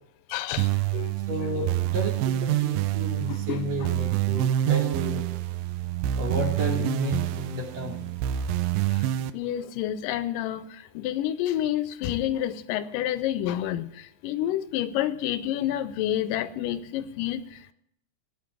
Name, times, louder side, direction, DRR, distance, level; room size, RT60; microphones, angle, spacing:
voice 1, 0.3-1.1 3.3-3.7 8.9-9.0 9.3-17.4, left 12 dB, 80° left, 2.2 m, -29 dB
sound 1, 0.6-9.3, right 13 dB, 85° right, 2.3 m, -27 dB
voice 2, 1.3-5.2 6.2-8.0, equal, 55° right, 3.6 m, -32 dB
15.0 x 9.6 x 6.0 m
omnidirectional pair, 3.9 m